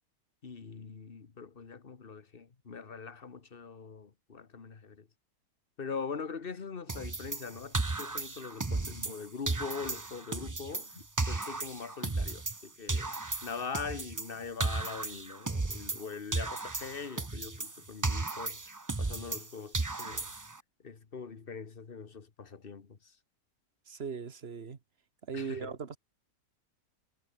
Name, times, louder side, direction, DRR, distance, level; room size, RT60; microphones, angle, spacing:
voice 1, 0.4-5.1 5.8-13.1 13.4-20.3 20.8-23.2 25.3-25.7, left 5 dB, 40° left, 1.6 m, -42 dB
sound 1, 6.9-9.2 9.5-12.6 12.9-16.1 16.3-19.5 19.7-20.6, right 3 dB, 15° right, 0.6 m, -35 dB
voice 2, 23.9-24.8 25.3-26.0, right 6 dB, 45° right, 1.6 m, -38 dB
omnidirectional pair, 1.6 m